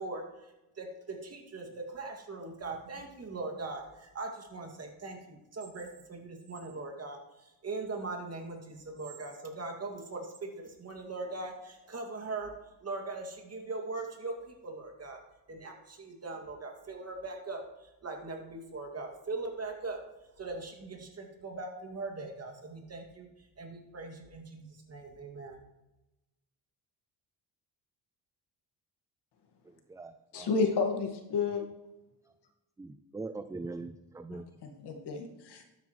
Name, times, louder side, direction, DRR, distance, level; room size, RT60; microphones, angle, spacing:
voice 1, 0.0-12.5 12.8-15.2 15.5-20.0 20.4-25.6, right 3 dB, 35° right, 2 dB, 2.3 m, -40 dB
voice 2, 29.7-30.5 32.8-34.5, right 3 dB, 10° right, 10 dB, 0.3 m, -42 dB
voice 3, 30.3-31.6 34.3-35.6, left 4 dB, 70° left, 3 dB, 1.8 m, -31 dB
12.5 x 9.2 x 3.2 m, 0.98 s
cardioid pair, 95°, 43 cm